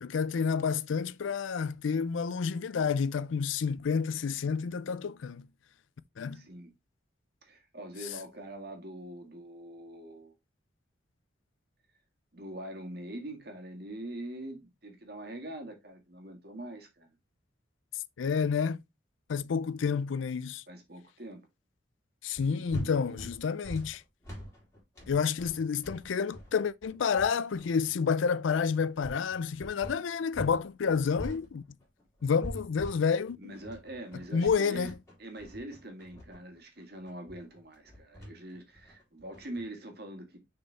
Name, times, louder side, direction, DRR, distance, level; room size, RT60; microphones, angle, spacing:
voice 1, 0.0-5.5 6.2-6.4 18.2-18.8 19.3-20.6 22.2-24.0 25.1-31.6 32.2-33.4 34.3-34.9, left 6 dB, 80° left, 0.4 m, -29 dB
voice 2, 6.3-6.7 7.4-10.3 12.3-17.1 20.7-21.5 22.4-23.3 33.4-34.9 35.2-40.4, right 1 dB, 55° right, 1.8 m, -43 dB
sound 1, 22.3-30.6 30.9-39.6, equal, 15° left, 3.4 m, -44 dB
6.5 x 4.4 x 3.3 m
head